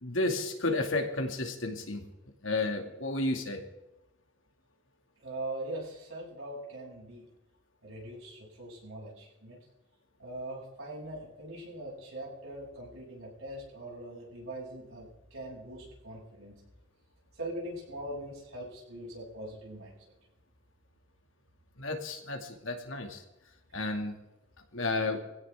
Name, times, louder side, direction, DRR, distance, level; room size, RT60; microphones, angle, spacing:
voice 1, 0.0-2.0 2.4-3.6 21.8-23.2 23.7-24.1 24.7-25.2, left 2 dB, 70° left, 3 dB, 2.4 m, -32 dB
voice 2, 5.2-7.2 7.8-9.6 10.2-16.6 17.3-19.9, right 1 dB, 85° right, -4 dB, 7.8 m, -41 dB
22.0 x 16.0 x 3.7 m, 0.96 s
head